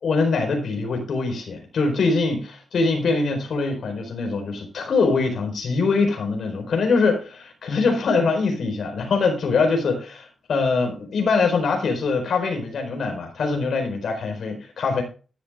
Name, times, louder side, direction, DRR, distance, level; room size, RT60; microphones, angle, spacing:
voice 1, 0.0-15.0, left 4 dB, 60° left, 4 dB, 4.4 m, -23 dB
13.0 x 11.0 x 2.4 m, 0.36 s
wide cardioid pair, 170°, 0 cm